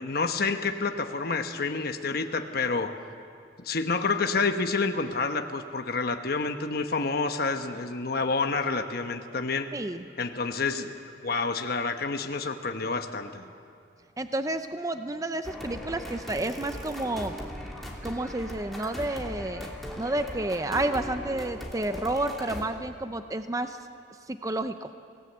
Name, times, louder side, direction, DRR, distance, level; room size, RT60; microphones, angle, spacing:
voice 1, 0.0-2.9 3.6-9.7 10.2-10.9 11.2-13.5, left 4 dB, 60° left, 6 dB, 1.1 m, -28 dB
voice 2, 9.7-10.0 14.2-17.4 18.0-19.7 20.0-23.8 24.3-24.9, right 2 dB, 20° right, 8 dB, 0.6 m, -30 dB
sound 1, 15.4-22.6, left 1 dB, ahead, 2.9 m, -39 dB
26.5 x 18.0 x 8.0 m, 2.4 s
head